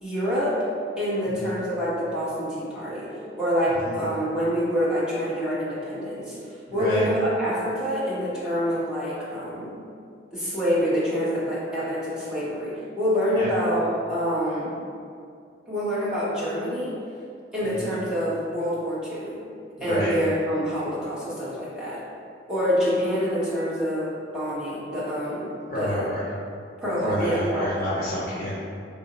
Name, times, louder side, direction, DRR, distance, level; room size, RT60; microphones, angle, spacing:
voice 1, 0.0-0.6 1.0-9.8 10.3-14.8 15.7-16.9 17.5-19.4 19.8-22.0 22.5-25.5 25.7-26.1 26.8-27.9, equal, 5° right, -11 dB, 0.9 m, -26 dB
voice 2, 6.7-7.0 13.3-13.5 19.8-20.1 25.7-26.2 27.0-28.6, equal, 50° left, -9 dB, 0.8 m, -28 dB
4.1 x 2.0 x 3.8 m, 2.3 s
head